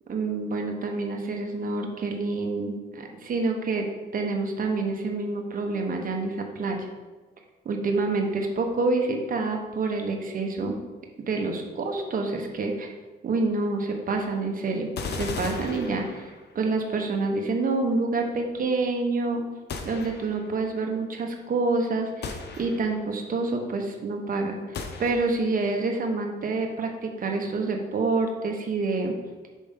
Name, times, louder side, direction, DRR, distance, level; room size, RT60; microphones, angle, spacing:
voice 1, 0.1-3.9 4.1-6.9 7.7-10.7 11.3-12.9 13.2-19.4 19.8-29.2, right 3 dB, 45° right, 3 dB, 1.0 m, -27 dB
sound 1, 15.0-16.6 19.7-20.6 22.2-23.1 24.7-25.6, left 4 dB, 55° left, 0.7 m, -36 dB
5.4 x 3.4 x 5.1 m, 1.3 s
cardioid pair, 90°, 20 cm